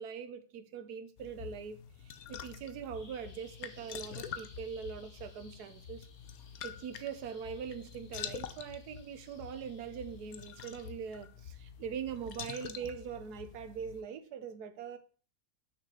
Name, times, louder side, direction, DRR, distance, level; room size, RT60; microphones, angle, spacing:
voice 1, 0.0-6.1 6.6-15.0, right 7 dB, 65° right, 1.4 m, -42 dB
sound 1, 1.2-14.0, left 9 dB, 60° left, 1.1 m, -47 dB
Bird vocalization bird call bird song, 2.9-10.9, left 3 dB, 30° left, 1.1 m, -61 dB
6.5 x 6.4 x 6.8 m
omnidirectional pair, 2.0 m